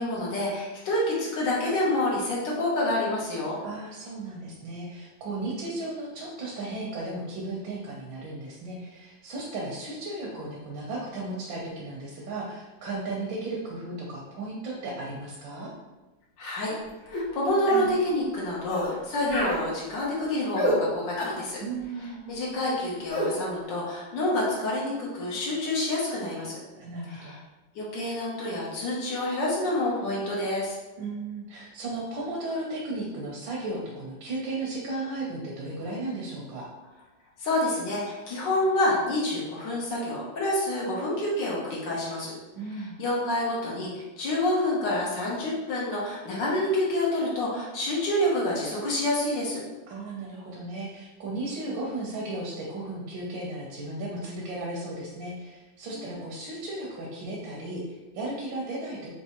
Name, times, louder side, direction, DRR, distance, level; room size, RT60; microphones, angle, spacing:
voice 1, 0.0-3.6 16.4-16.8 17.0-21.6 22.3-26.6 27.1-27.4 27.7-30.7 37.4-42.3 43.0-49.6 55.9-56.0, left 1 dB, 70° left, -5 dB, 1.6 m, -28 dB
voice 2, 3.6-15.7 21.6-22.2 26.8-27.4 31.0-36.7 42.6-43.0 49.9-59.1, right 2 dB, 80° right, -3 dB, 1.6 m, -35 dB
sound 1, 17.1-17.3 17.7-17.9 18.7-18.9 19.3-19.6 20.6-20.8 21.2-21.4 23.1-23.3, equal, 50° left, 1.0 m, -28 dB
4.6 x 2.9 x 2.9 m, 1.1 s
omnidirectional pair, 2.1 m